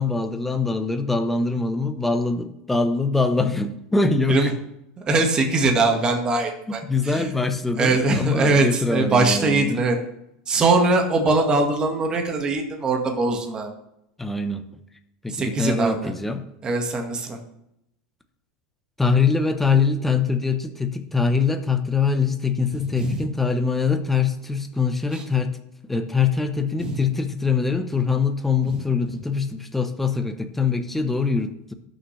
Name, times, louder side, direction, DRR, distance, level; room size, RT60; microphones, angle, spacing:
voice 1, 0.0-4.5 6.7-9.8 14.2-14.7 15.2-16.5 19.0-25.6 25.9-31.7, left 4 dB, 5° left, 7 dB, 0.9 m, -23 dB
voice 2, 5.0-7.3 7.8-10.0 10.5-13.7 15.3-15.9 16.6-17.4 22.7-23.2 25.1-25.2 26.8-27.0 28.7-28.8, right 3 dB, 20° right, 3 dB, 1.6 m, -22 dB
18.5 x 6.4 x 3.2 m, 0.79 s
supercardioid pair, 145°, 4 cm